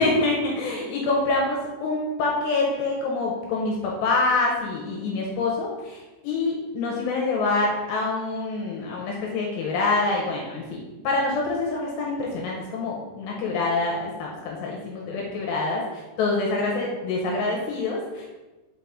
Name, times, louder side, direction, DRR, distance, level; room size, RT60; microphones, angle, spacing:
voice 1, 0.0-15.8 16.2-18.3, left 3 dB, 75° left, -2 dB, 2.8 m, -26 dB
5.8 x 5.5 x 3.6 m, 1.1 s
omnidirectional pair, 5.5 m